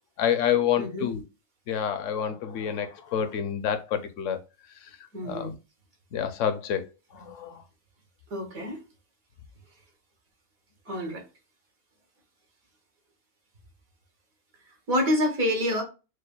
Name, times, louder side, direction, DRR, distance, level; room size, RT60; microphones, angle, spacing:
voice 1, 0.2-1.2 1.7-4.4 5.2-5.6 6.1-6.9 7.1-7.6, left 9 dB, 65° left, 0.9 m, -28 dB
voice 2, 0.8-1.1 5.1-5.5 8.3-8.8 10.9-11.2 14.9-15.8, left 1 dB, 70° right, 1.7 m, -27 dB
6.5 x 2.2 x 2.3 m
omnidirectional pair, 1.5 m